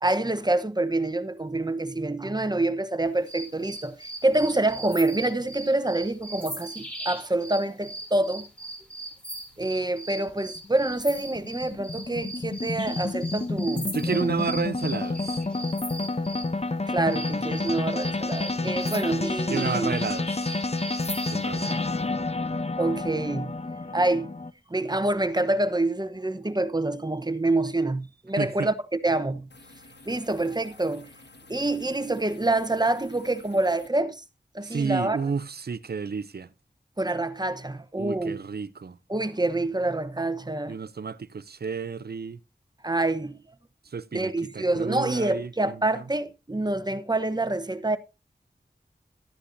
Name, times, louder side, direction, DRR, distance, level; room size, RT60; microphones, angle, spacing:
voice 1, 0.0-8.5 9.6-14.3 16.9-19.9 22.8-23.5 23.9-24.3 24.7-28.7 29.0-29.5 30.1-31.1 31.5-34.2 34.5-35.2 37.0-38.4 39.1-40.8 42.8-43.4 44.1-48.0, right 2 dB, 20° right, 0.9 m, -26 dB
sound 1, 3.3-16.5 17.1-21.8, right 1 dB, 5° left, 5.9 m, -39 dB
sound 2, 10.3-24.5, left 3 dB, 35° left, 0.7 m, -30 dB
voice 2, 13.9-15.4 19.5-20.5 21.3-21.7 28.4-28.7 34.6-36.5 38.0-39.0 40.7-42.4 43.9-46.0, right 5 dB, 60° right, 0.6 m, -31 dB
sound 3, 29.5-33.9, left 2 dB, 70° left, 1.5 m, -51 dB
13.0 x 9.7 x 2.6 m
wide cardioid pair, 55°, 18 cm